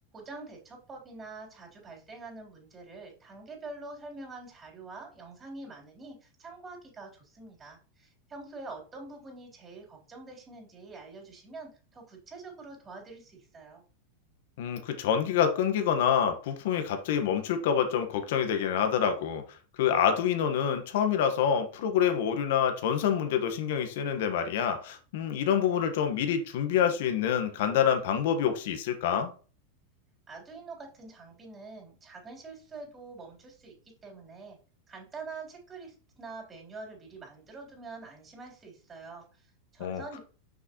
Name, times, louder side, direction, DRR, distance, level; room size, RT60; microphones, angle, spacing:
voice 1, 0.1-13.8 30.3-34.6 34.9-40.2, right 3 dB, 25° right, 3.9 m, -45 dB
voice 2, 14.6-19.4 19.8-29.3 39.8-40.2, left 8 dB, 70° left, 1.4 m, -27 dB
6.7 x 5.9 x 3.1 m
hypercardioid pair, 115°, 0 cm